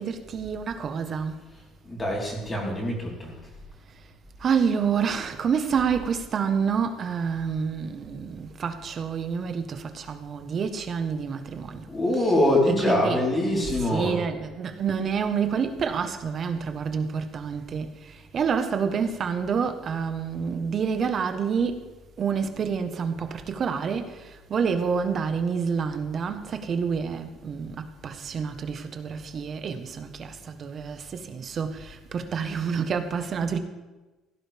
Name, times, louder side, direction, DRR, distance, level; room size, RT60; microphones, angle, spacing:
voice 1, 0.0-1.4 4.4-11.9 12.1-13.3 13.8-21.9 22.2-33.6, right 6 dB, 35° right, 1.2 m, -28 dB
voice 2, 1.8-3.3 11.9-14.2, left 1 dB, 15° left, 4.1 m, -24 dB
16.5 x 15.5 x 3.5 m
cardioid pair, 155°, 0 cm